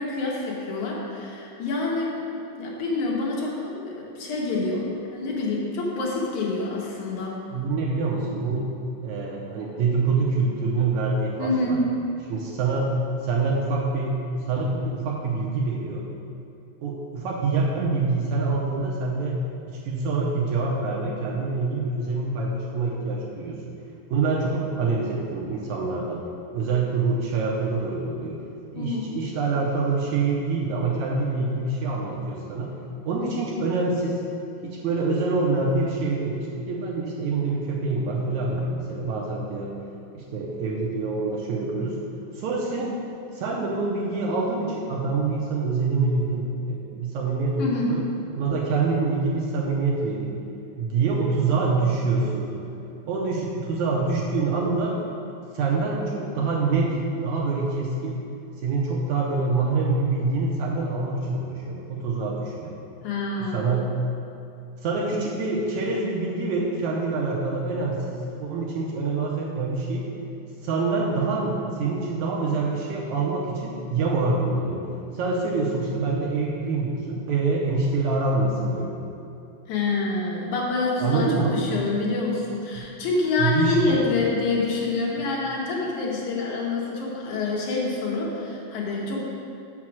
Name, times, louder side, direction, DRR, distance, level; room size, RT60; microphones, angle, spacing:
voice 1, 0.0-2.2 2.6-7.4 11.4-11.9 28.8-29.1 47.6-48.0 63.0-63.7 79.7-89.2, left 3 dB, 70° left, -3 dB, 2.3 m, -27 dB
voice 2, 7.5-8.8 9.0-11.8 12.3-13.0 13.2-16.1 16.8-19.4 19.7-23.6 24.1-26.3 26.5-28.4 28.7-32.7 33.1-34.2 34.6-39.7 40.1-42.0 42.3-43.0 43.3-48.0 48.4-50.4 50.8-52.7 53.1-55.0 55.5-57.0 57.2-58.2 58.6-62.8 63.4-63.9 64.8-70.1 70.6-74.8 75.1-78.9 81.0-81.6 82.8-82.9 83.4-84.0 85.2-85.3, right 3 dB, 75° right, -3 dB, 1.9 m, -26 dB
6.4 x 6.1 x 6.0 m, 2.6 s
omnidirectional pair, 3.9 m